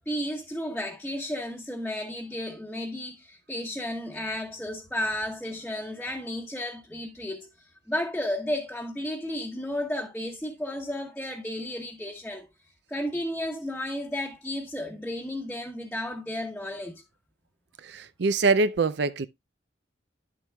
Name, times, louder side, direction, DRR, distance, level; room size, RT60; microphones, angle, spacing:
voice 1, 0.0-12.5 12.9-17.0, left 1 dB, 5° left, 1.0 m, -33 dB
voice 2, 17.8-19.3, right 3 dB, 60° right, 0.5 m, -24 dB
9.9 x 7.7 x 2.3 m
head